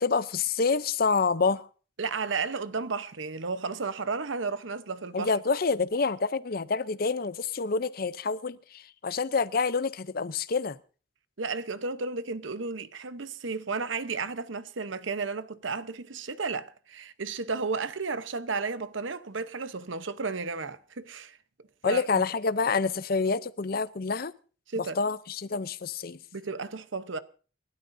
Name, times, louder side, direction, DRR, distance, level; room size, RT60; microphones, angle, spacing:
voice 1, 0.0-1.7 5.1-10.8 21.8-24.3 24.8-26.2, left 4 dB, 50° left, 0.6 m, -27 dB
voice 2, 2.0-5.3 11.4-21.4 21.8-22.2 24.7-25.0 26.3-27.2, right 4 dB, 80° right, 0.9 m, -33 dB
28.5 x 12.5 x 2.7 m
head